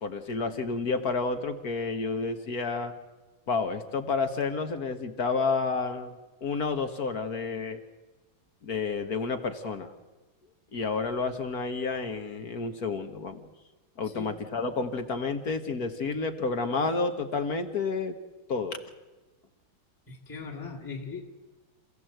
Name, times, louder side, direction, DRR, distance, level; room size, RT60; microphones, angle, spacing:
voice 1, 0.0-2.9 3.5-6.1 6.4-7.8 8.6-9.9 10.7-13.5 14.0-18.2 18.5-18.8, left 4 dB, 50° left, 8 dB, 1.6 m, -30 dB
voice 2, 14.0-14.4 20.1-21.2, left 5 dB, 10° left, 0 dB, 1.6 m, -39 dB
27.5 x 15.5 x 7.9 m, 1.2 s
omnidirectional pair, 2.4 m